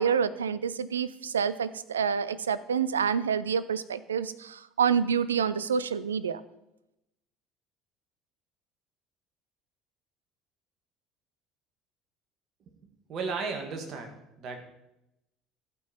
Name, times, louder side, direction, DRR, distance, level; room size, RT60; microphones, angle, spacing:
voice 1, 0.0-6.4, right 7 dB, 85° right, 16 dB, 0.4 m, -28 dB
voice 2, 13.1-14.7, right 4 dB, 50° right, 4 dB, 1.7 m, -35 dB
15.0 x 5.3 x 4.3 m, 0.88 s
hypercardioid pair, 65°, 0 cm